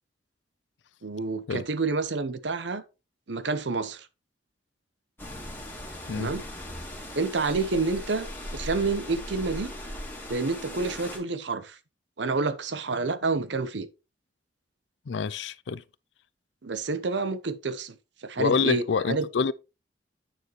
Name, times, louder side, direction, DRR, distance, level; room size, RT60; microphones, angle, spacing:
voice 1, 1.0-2.8 3.3-4.1 6.1-6.4 7.2-9.7 10.3-11.8 12.2-13.9 16.6-17.9 18.2-19.3, right 3 dB, 80° right, 0.8 m, -29 dB
sound 1, 5.2-11.2, left 1 dB, 10° left, 2.8 m, -39 dB
voice 2, 15.1-15.8 18.4-19.5, left 5 dB, 80° left, 0.4 m, -27 dB
9.2 x 6.6 x 3.1 m
head